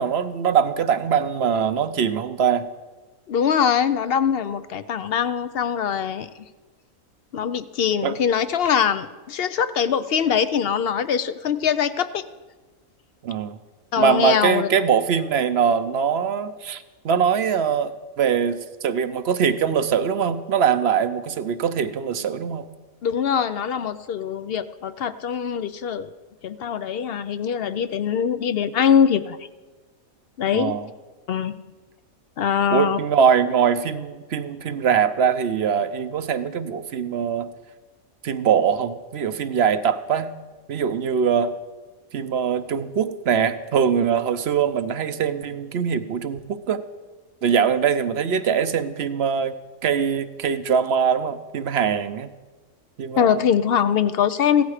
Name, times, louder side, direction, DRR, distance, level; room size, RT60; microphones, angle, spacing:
voice 1, 0.0-2.6 8.0-8.1 13.2-13.6 14.0-22.7 30.5-30.9 32.7-37.5 38.2-40.3 40.7-41.6 42.1-46.8 47.4-49.5 49.8-52.3 53.0-53.4, right 7 dB, 55° right, 12 dB, 0.8 m, -22 dB
voice 2, 3.3-6.4 7.3-12.2 13.9-14.7 23.0-26.1 26.4-29.4 30.4-30.7 31.3-31.5 32.4-33.0 53.2-54.6, left 8 dB, 60° left, 13 dB, 0.6 m, -22 dB
16.0 x 13.0 x 4.9 m, 1.3 s
omnidirectional pair, 1.5 m